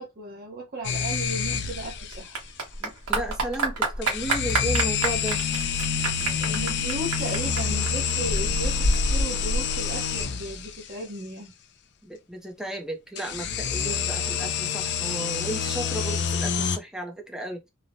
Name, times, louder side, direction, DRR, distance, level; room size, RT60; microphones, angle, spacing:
voice 1, 0.0-2.4 6.4-11.5, right 1 dB, 45° right, 0.8 m, -36 dB
sound 1, 0.8-2.1 4.0-10.7 13.2-16.8, left 6 dB, 55° left, 0.4 m, -28 dB
Clapping / Applause, 1.3-10.2, right 2 dB, 75° right, 1.2 m, -28 dB
voice 2, 2.8-5.4 12.0-17.6, right 1 dB, 5° right, 0.4 m, -34 dB
3.1 x 2.0 x 2.6 m
head